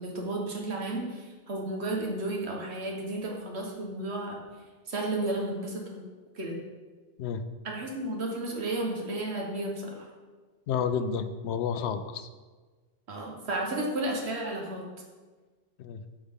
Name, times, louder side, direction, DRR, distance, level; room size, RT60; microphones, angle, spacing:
voice 1, 0.0-4.4 4.9-6.0 6.3-6.6 7.6-10.1 13.1-14.8, right 2 dB, 80° right, 0 dB, 1.5 m, -33 dB
voice 2, 10.7-12.3 15.8-16.0, left 7 dB, 90° left, 10 dB, 0.9 m, -30 dB
8.6 x 5.2 x 3.6 m, 1.4 s
omnidirectional pair, 1.1 m